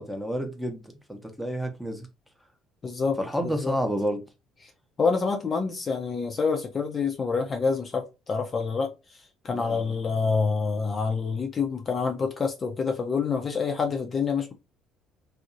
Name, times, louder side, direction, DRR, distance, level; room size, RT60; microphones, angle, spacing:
voice 1, 0.0-2.1 3.2-4.2 9.5-10.0, equal, ahead, 0.8 m, -30 dB
voice 2, 2.8-3.2 3.4-3.7 4.6-4.7 5.0-14.5, left 5 dB, 35° left, 0.5 m, -27 dB
2.6 x 2.0 x 2.5 m
hypercardioid pair, 55°, 0 cm